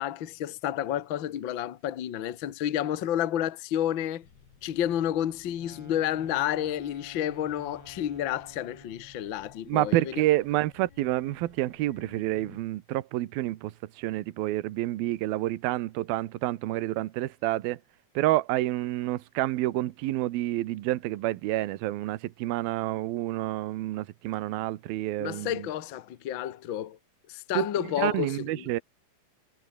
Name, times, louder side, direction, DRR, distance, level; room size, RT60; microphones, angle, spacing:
voice 1, 0.0-4.2 4.6-10.0 25.2-27.0 27.3-28.7, left 11 dB, 65° left, 1.1 m, -30 dB
sound 1, 4.2-12.6, left 6 dB, 85° left, 6.5 m, -56 dB
sound 2, 5.5-9.2, left 1 dB, 5° left, 3.6 m, -52 dB
voice 2, 9.7-17.8 18.1-25.7 27.5-28.8, right 16 dB, 75° right, 2.8 m, -29 dB
omnidirectional pair, 4.4 m